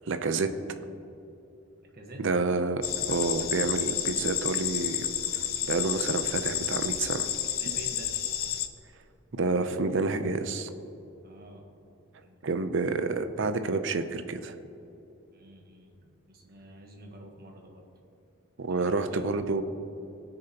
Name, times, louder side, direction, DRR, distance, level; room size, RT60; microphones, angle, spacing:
voice 1, 0.1-0.5 2.2-2.8 3.1-5.0 5.3-7.3 7.7-7.8 9.3-10.7 12.4-14.6 18.6-19.6, right 3 dB, 65° right, 9 dB, 0.6 m, -29 dB
voice 2, 1.9-2.2 7.6-8.1 11.2-11.7 12.2-12.4 15.3-17.8 19.1-19.3, right 1 dB, 50° right, 2 dB, 1.4 m, -48 dB
sound 1, 2.8-8.7, left 10 dB, 50° left, 0.6 m, -30 dB
19.5 x 6.6 x 2.9 m, 2.8 s
head